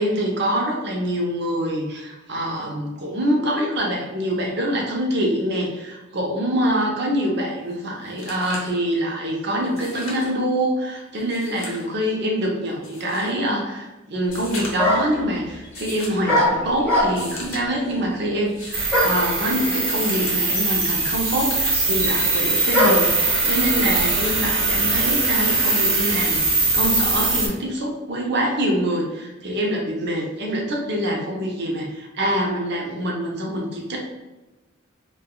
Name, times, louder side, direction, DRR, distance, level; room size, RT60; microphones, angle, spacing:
voice 1, 0.0-34.0, equal, 55° right, -1 dB, 0.6 m, -25 dB
sound 1, 7.7-7.8 8.1-8.8 9.7-10.3 11.2-11.9 12.8-13.3 14.2-15.0 15.7-16.2 17.0-17.6 18.4-19.1 19.8-20.4 21.0-21.8 22.5-23.0 23.8-24.4 25.8-25.9, left 2 dB, 90° left, 0.8 m, -37 dB
sound 2, 14.3-14.4 14.8-15.2 16.3-17.4 18.9-19.3 20.2-20.3 20.5-23.2, left 1 dB, 10° left, 0.9 m, -22 dB
sound 3, 18.7-27.5, right 3 dB, 90° right, 0.8 m, -21 dB
3.2 x 2.3 x 2.3 m, 1.1 s
head